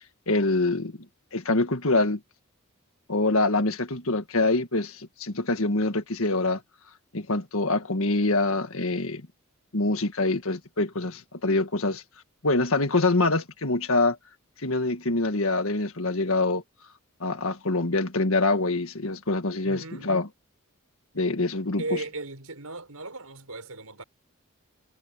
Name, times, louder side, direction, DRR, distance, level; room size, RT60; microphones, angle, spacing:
voice 1, 0.3-1.0 1.3-2.2 3.1-6.6 7.1-9.3 9.7-12.0 12.4-14.2 14.6-16.6 17.2-20.3 21.2-21.8, left 2 dB, 65° left, 1.8 m, -25 dB
voice 2, 19.6-20.1 21.8-24.0, right 2 dB, 80° right, 5.6 m, -36 dB
head